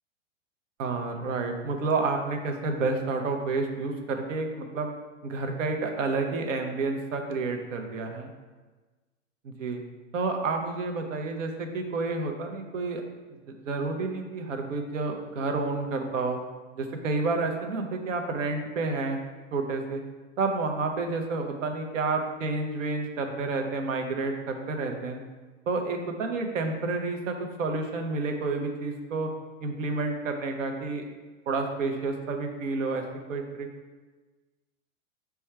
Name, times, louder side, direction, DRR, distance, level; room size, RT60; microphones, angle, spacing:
voice 1, 0.8-4.9 5.2-8.3 9.4-9.8 10.1-13.0 13.5-16.4 16.8-19.2 19.5-20.0 20.4-25.2 25.7-29.3 29.6-31.0 31.5-33.0 33.3-33.7, right 3 dB, 85° right, 4 dB, 0.7 m, -30 dB
4.4 x 2.3 x 4.4 m, 1.3 s
hypercardioid pair, 125°, 37 cm